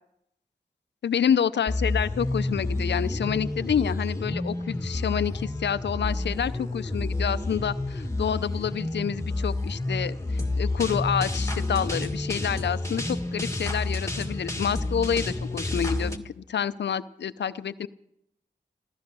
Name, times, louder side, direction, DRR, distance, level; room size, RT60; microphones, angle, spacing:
voice 1, 1.0-17.9, left 8 dB, 90° left, 14 dB, 0.6 m, -28 dB
sound 1, 1.7-16.2, left 2 dB, 15° left, 1.7 m, -29 dB
15.0 x 14.5 x 6.2 m, 0.78 s
cardioid pair, 40°, 18 cm